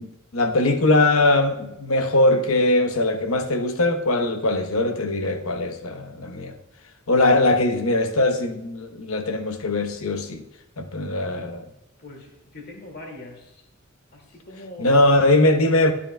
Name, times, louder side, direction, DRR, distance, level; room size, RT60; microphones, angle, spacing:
voice 1, 0.0-6.5 7.1-10.4 10.8-11.6 14.8-15.9, left 2 dB, 70° left, 1.0 m, -21 dB
voice 2, 12.0-13.6 14.1-15.1, left 2 dB, 50° left, 2.1 m, -41 dB
13.5 x 9.7 x 2.2 m
head